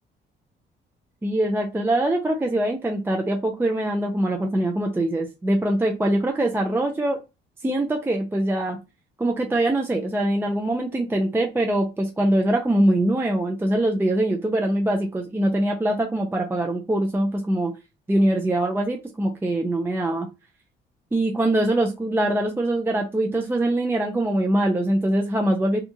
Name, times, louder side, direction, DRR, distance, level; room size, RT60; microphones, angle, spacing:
voice 1, 1.2-7.2 7.6-8.8 9.2-17.7 18.1-20.3 21.1-25.8, right 1 dB, 10° right, 3 dB, 0.4 m, -23 dB
2.8 x 2.2 x 2.6 m, 0.26 s
cardioid pair, 90°, 20 cm